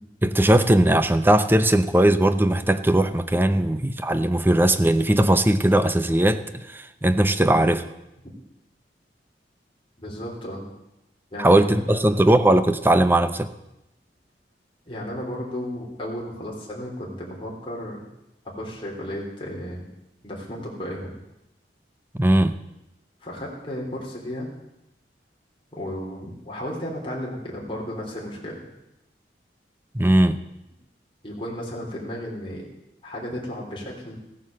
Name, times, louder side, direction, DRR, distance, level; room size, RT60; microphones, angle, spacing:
voice 1, 0.2-7.9 11.4-13.5 22.1-22.6 29.9-30.4, right 1 dB, 10° right, 11 dB, 0.7 m, -19 dB
voice 2, 10.0-10.7 11.3-11.7 11.9-12.2 14.9-18.1 18.6-19.9 20.2-21.1 23.2-24.5 25.7-28.6 31.2-32.6 33.0-34.2, equal, 30° left, -3 dB, 3.5 m, -34 dB
15.5 x 9.4 x 7.6 m, 0.89 s
head